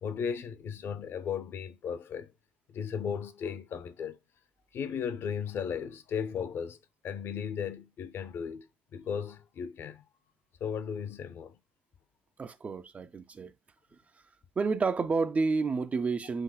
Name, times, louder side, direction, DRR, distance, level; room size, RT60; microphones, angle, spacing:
voice 1, 0.0-2.3 2.7-4.2 4.7-6.8 7.0-8.7 8.9-10.0 10.6-11.6, left 7 dB, 40° left, 0.6 m, -35 dB
voice 2, 12.4-13.5 14.6-16.4, right 4 dB, 20° right, 0.4 m, -30 dB
7.6 x 2.7 x 2.2 m
figure-of-eight pair, 65°, 6 cm